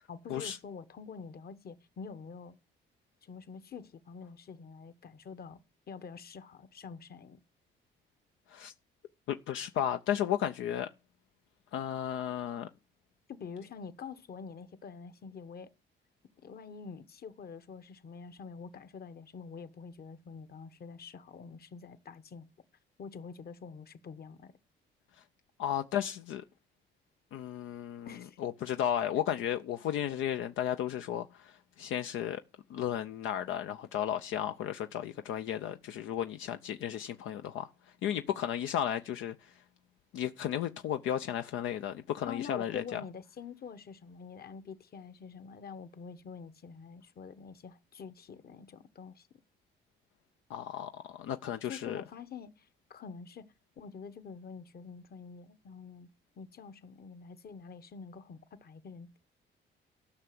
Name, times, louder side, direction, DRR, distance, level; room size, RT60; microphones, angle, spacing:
voice 1, 0.1-2.6 3.2-5.6 5.9-7.4 13.3-15.7 16.4-22.5 23.0-24.5 28.1-28.4 42.3-49.3 51.6-53.4 53.8-56.1 56.4-59.2, left 6 dB, 50° left, 1.1 m, -46 dB
voice 2, 9.3-10.9 11.7-12.7 25.6-26.4 27.3-28.1 28.4-32.4 32.7-37.7 38.0-39.5 40.1-43.0 50.5-52.0, left 10 dB, 85° left, 0.6 m, -34 dB
13.0 x 5.8 x 7.8 m
cardioid pair, 90°, 20 cm